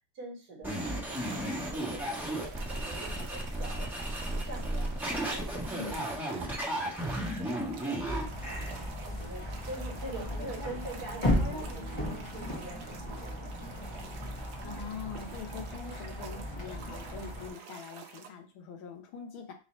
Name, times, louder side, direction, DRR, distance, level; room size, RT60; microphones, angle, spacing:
voice 1, 0.1-3.9 4.3-13.9, right 2 dB, 50° right, -1 dB, 1.7 m, -46 dB
sound 1, 0.6-8.7, right 1 dB, ahead, 1.0 m, -34 dB
sound 2, 1.1-18.3, right 7 dB, 70° right, 1.2 m, -49 dB
voice 2, 5.6-6.0 14.6-19.5, left 6 dB, 70° left, 3 dB, 1.6 m, -43 dB
sound 3, 8.1-17.5, left 1 dB, 25° left, 0.6 m, -35 dB
4.0 x 2.6 x 4.2 m, 0.35 s
omnidirectional pair, 2.4 m